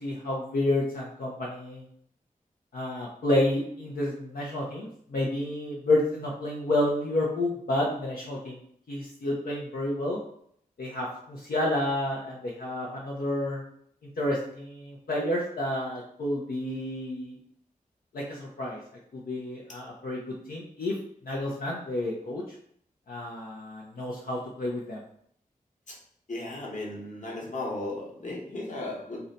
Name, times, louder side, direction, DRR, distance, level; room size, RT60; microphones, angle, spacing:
voice 1, 0.0-1.8 2.7-8.6 8.9-10.2 10.8-13.6 14.2-17.3 18.1-18.8 19.1-21.0 21.2-22.4 23.1-25.0, left 1 dB, 80° left, -4 dB, 0.6 m, -30 dB
voice 2, 26.3-29.2, left 2 dB, 55° left, -3 dB, 1.1 m, -35 dB
2.7 x 2.2 x 3.8 m, 0.66 s
cardioid pair, 45°, 15 cm